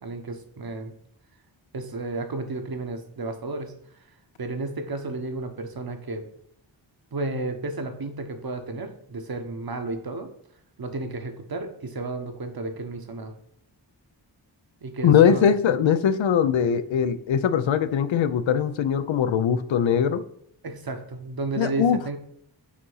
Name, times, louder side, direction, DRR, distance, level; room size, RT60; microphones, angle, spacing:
voice 1, 0.0-0.9 1.7-3.7 4.4-6.3 7.1-10.3 10.8-13.3 14.8-15.5 20.6-22.2, right 2 dB, 55° right, 7 dB, 1.0 m, -32 dB
voice 2, 15.0-20.2 21.6-22.0, left 8 dB, 85° left, 12 dB, 0.6 m, -21 dB
6.3 x 2.8 x 5.5 m, 0.69 s
cardioid pair, 45°, 44 cm